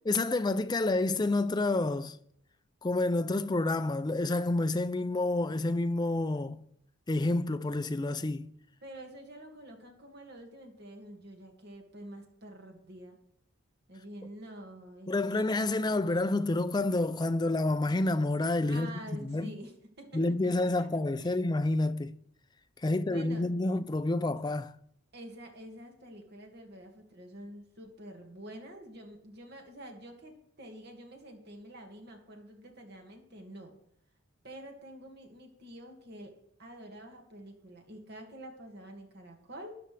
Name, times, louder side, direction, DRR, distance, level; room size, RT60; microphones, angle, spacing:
voice 1, 0.1-2.2 2.8-6.6 7.1-8.5 15.1-19.5 20.1-22.1 22.8-24.7, left 2 dB, 20° left, 0.4 m, -29 dB
voice 2, 8.8-13.2 13.9-15.5 15.8-16.0 18.7-20.5 20.8-20.9 21.2-21.4 23.0-23.5 25.1-33.7 34.4-36.3 36.6-39.7, right 1 dB, 55° right, 2.1 m, -47 dB
13.0 x 10.0 x 3.4 m
head